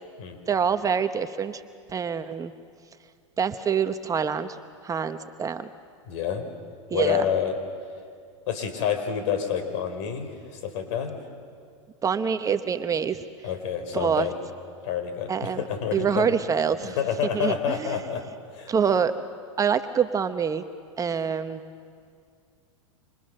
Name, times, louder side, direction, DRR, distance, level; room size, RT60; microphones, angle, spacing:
voice 1, 0.5-1.6 1.9-2.5 3.4-4.6 4.8-5.7 6.9-7.3 12.0-13.2 13.9-14.3 15.3-15.6 15.9-17.0 17.3-18.0 18.7-19.1 19.6-20.6 21.0-21.6, right 7 dB, 20° right, 9 dB, 0.9 m, -25 dB
voice 2, 6.1-6.5 6.9-7.5 8.5-11.2 13.4-14.3 14.8-16.3 16.8-18.2 18.5-19.0, left 8 dB, 60° left, 7 dB, 4.6 m, -28 dB
28.5 x 26.0 x 6.6 m, 2.2 s
hypercardioid pair, 110°, 17 cm